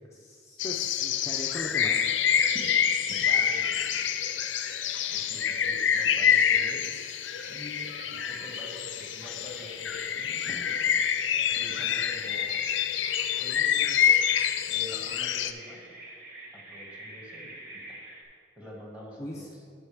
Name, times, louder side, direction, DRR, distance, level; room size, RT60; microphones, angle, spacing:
voice 1, 0.0-2.0 19.2-19.5, left 1 dB, 15° left, -2 dB, 0.5 m, -39 dB
sound 1, 0.6-15.5, left 8 dB, 80° left, 0.5 m, -27 dB
Bird vocalization bird call bird song, 2.2-18.2, right 1 dB, 50° right, 1.3 m, -48 dB
voice 2, 3.2-4.2 5.1-6.8 7.5-10.5 11.5-12.6 13.4-14.0 14.6-15.9 16.7-17.5 17.9-18.0 18.6-19.5, left 1 dB, 10° right, -3 dB, 2.0 m, -46 dB
12.5 x 5.6 x 3.5 m, 2.3 s
head